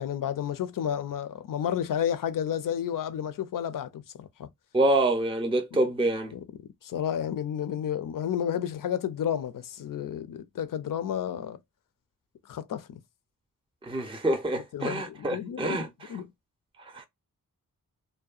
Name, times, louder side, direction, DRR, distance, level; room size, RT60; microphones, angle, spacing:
voice 1, 0.0-4.5 6.3-6.4 6.8-11.6 12.5-13.0 14.7-16.3, left 9 dB, 65° left, 0.5 m, -31 dB
voice 2, 4.7-6.3 13.8-15.9 16.8-17.0, right 1 dB, 15° right, 0.5 m, -26 dB
2.7 x 2.1 x 2.4 m
cardioid pair, 70°, 36 cm